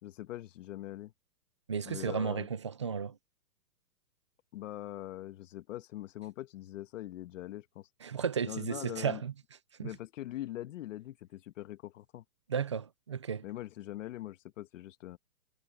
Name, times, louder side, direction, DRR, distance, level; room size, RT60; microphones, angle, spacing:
voice 1, 0.0-1.1 1.8-2.5 4.5-7.9 8.4-9.2 9.8-12.2 13.4-15.2, left 14 dB, 50° left, 1.3 m, -42 dB
voice 2, 1.7-3.2 8.0-9.3 9.8-9.9 12.5-13.4, right 6 dB, 20° right, 0.4 m, -34 dB
hypercardioid pair, 145°, 48 cm